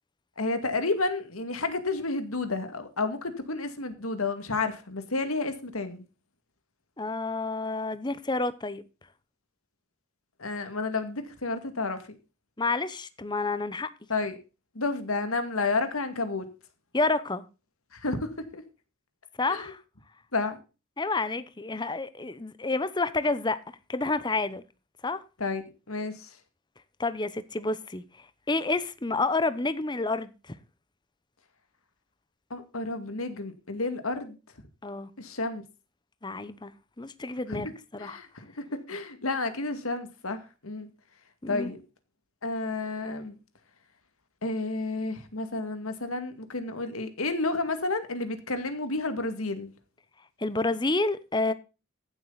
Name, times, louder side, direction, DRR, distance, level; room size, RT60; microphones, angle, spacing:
voice 1, 0.4-6.0 10.4-12.2 14.1-14.4 14.7-16.5 17.9-18.6 19.5-19.7 20.3-20.6 25.4-26.3 32.5-34.4 35.2-35.6 37.5-37.7 38.0-40.9 41.5-41.8 42.4-43.4 44.4-49.7, left 3 dB, 90° left, 2.2 m, -31 dB
voice 2, 7.0-8.8 12.6-13.9 16.9-17.4 19.4-19.8 21.0-23.6 23.9-24.6 25.0-25.2 27.0-28.0 28.5-30.6 34.8-35.1 36.2-36.7 37.0-38.2 41.4-41.7 50.4-51.5, left 3 dB, 20° left, 0.9 m, -29 dB
15.5 x 7.6 x 4.0 m
head